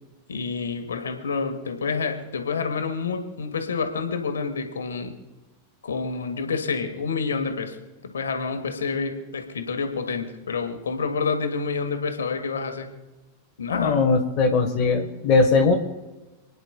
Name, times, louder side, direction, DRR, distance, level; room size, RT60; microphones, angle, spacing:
voice 1, 0.3-5.1 5.8-7.8 8.1-12.9 13.6-14.0, left 5 dB, 70° left, 6 dB, 1.6 m, -28 dB
voice 2, 13.7-15.8, left 4 dB, 35° left, 3 dB, 1.5 m, -20 dB
28.5 x 9.9 x 2.4 m, 1.1 s
figure-of-eight pair, 90°, 0 cm